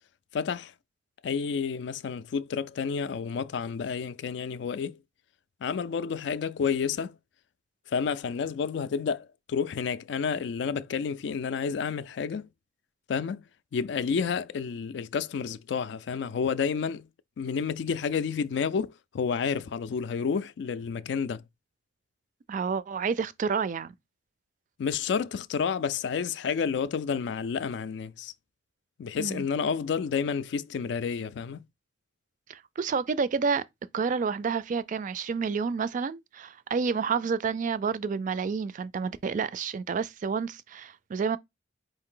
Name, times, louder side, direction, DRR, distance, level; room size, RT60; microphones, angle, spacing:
voice 1, 0.3-0.7 1.2-5.0 5.6-7.2 7.9-12.5 13.1-13.4 13.7-17.1 17.4-21.4 24.8-28.3 29.0-31.7, left 6 dB, 70° left, 0.3 m, -30 dB
voice 2, 22.5-23.9 29.2-29.4 32.5-33.6 33.9-41.4, right 5 dB, 45° right, 0.3 m, -29 dB
4.6 x 2.6 x 3.7 m
head